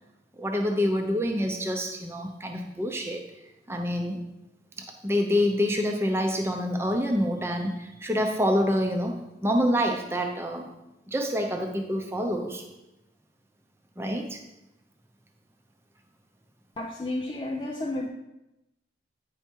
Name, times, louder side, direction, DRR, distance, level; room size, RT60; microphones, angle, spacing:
voice 1, 0.4-3.2 3.7-4.2 4.8-10.7 11.1-12.6 14.0-14.4, equal, 15° right, 3 dB, 0.7 m, -27 dB
voice 2, 16.8-18.1, left 2 dB, 25° left, 1 dB, 0.4 m, -31 dB
9.3 x 4.7 x 4.6 m, 0.94 s
head